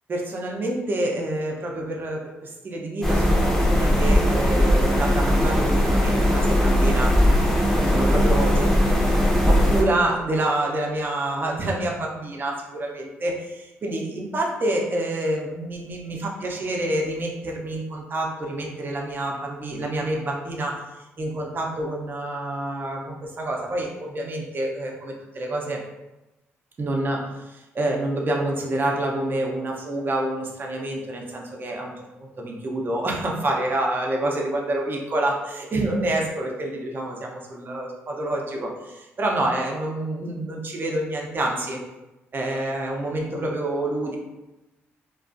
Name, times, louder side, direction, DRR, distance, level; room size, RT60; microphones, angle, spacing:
voice 1, 0.1-7.1 7.9-20.8 21.2-25.8 26.8-41.8 42.3-44.2, right 1 dB, 40° right, 0 dB, 0.5 m, -27 dB
sound 1, 3.0-9.8, equal, 5° left, 0.7 m, -19 dB
2.4 x 2.2 x 2.5 m, 1.0 s
cardioid pair, 70°, 5 cm